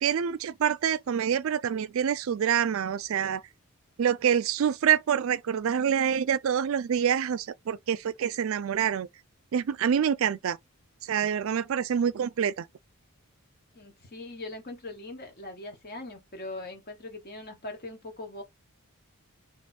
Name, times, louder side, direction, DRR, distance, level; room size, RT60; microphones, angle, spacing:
voice 1, 0.0-3.4 4.0-9.1 9.5-10.6 11.0-12.7, right 8 dB, 65° right, 0.3 m, -26 dB
voice 2, 13.7-18.4, left 2 dB, 45° left, 1.3 m, -41 dB
3.3 x 3.0 x 4.2 m
head